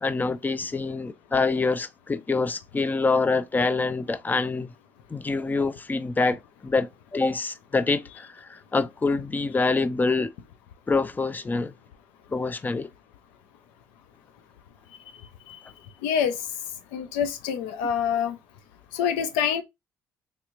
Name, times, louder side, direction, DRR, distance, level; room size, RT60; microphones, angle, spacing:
voice 1, 0.0-4.7 5.1-10.3 10.9-11.7 12.3-12.9, left 3 dB, 20° left, 0.4 m, -26 dB
voice 2, 16.0-16.4 16.9-18.4 18.9-19.6, left 8 dB, 80° left, 0.4 m, -26 dB
3.3 x 2.9 x 2.4 m
hypercardioid pair, 65°, 9 cm